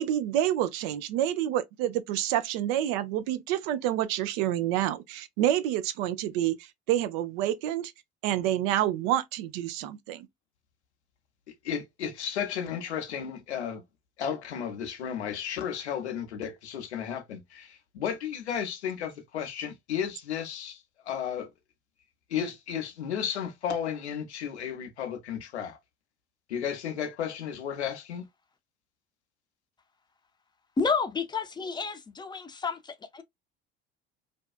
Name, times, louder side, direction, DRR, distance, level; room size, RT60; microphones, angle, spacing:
voice 1, 0.0-6.5 6.9-7.9 8.2-10.3, right 12 dB, 60° right, 0.5 m, -28 dB
voice 2, 11.6-13.8 14.2-21.5 22.3-25.8 26.5-28.3, left 8 dB, 80° left, 0.6 m, -33 dB
voice 3, 30.8-33.2, left 5 dB, 15° left, 0.5 m, -30 dB
2.6 x 2.3 x 2.3 m
figure-of-eight pair, 60°, 33 cm